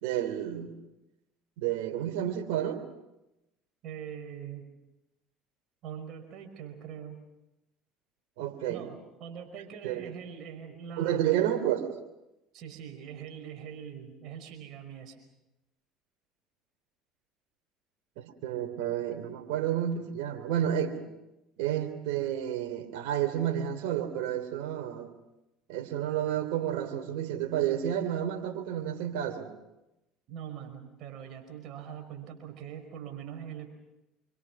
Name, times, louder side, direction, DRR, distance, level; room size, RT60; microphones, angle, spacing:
voice 1, 0.0-0.7 1.6-2.8 8.4-8.8 9.8-10.1 11.0-12.0 18.2-21.0 21.6-25.1 25.7-29.5, right 10 dB, 75° right, 6 dB, 3.4 m, -30 dB
voice 2, 3.8-4.7 5.8-7.2 8.7-11.2 12.5-15.1 30.3-33.7, right 8 dB, 60° right, 5 dB, 5.3 m, -42 dB
27.0 x 24.5 x 6.2 m, 0.94 s
hypercardioid pair, 70°, 0 cm